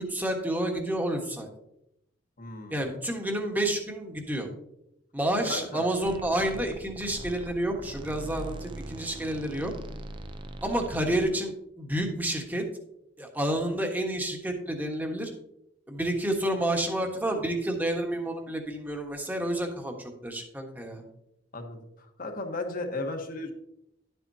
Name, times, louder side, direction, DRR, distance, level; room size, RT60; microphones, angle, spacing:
voice 1, 0.0-1.5 2.7-4.5 5.1-9.7 10.6-12.7 13.2-15.3 15.9-21.0, right 1 dB, 10° right, 2 dB, 1.3 m, -29 dB
voice 2, 2.4-2.8 5.5-5.8 21.5-21.8 22.2-23.5, left 2 dB, 50° left, 4 dB, 1.2 m, -34 dB
sound 1, 6.0-11.3, right 1 dB, 25° right, 0.5 m, -41 dB
11.5 x 7.8 x 2.8 m, 0.80 s
head